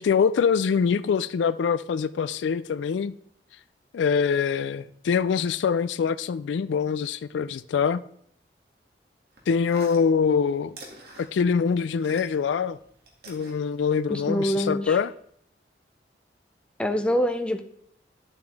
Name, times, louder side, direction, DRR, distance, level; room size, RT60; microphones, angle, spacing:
voice 1, 0.0-3.1 3.9-8.0 9.5-10.8 11.2-12.8 13.3-15.1, left 6 dB, 85° left, 0.3 m, -24 dB
sound 1, 9.3-12.5 12.8-14.3, right 2 dB, 60° right, 2.2 m, -47 dB
voice 2, 14.1-15.0 16.8-17.6, equal, 5° left, 0.6 m, -25 dB
11.5 x 8.0 x 3.5 m
head